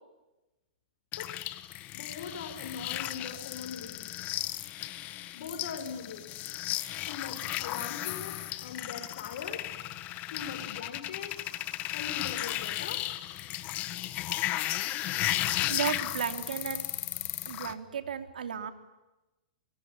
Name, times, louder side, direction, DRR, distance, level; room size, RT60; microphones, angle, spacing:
sound 1, 1.1-17.7, left 15 dB, 35° left, 1.5 m, -35 dB
voice 1, 1.9-4.1 5.3-6.3 7.1-9.6 10.3-11.3 11.9-13.0, left 6 dB, 70° left, 4 dB, 7.1 m, -41 dB
voice 2, 15.7-16.9 17.4-18.7, right 8 dB, 85° right, 7 dB, 3.3 m, -34 dB
24.5 x 23.5 x 9.9 m, 1.0 s
hypercardioid pair, 130°, 5 cm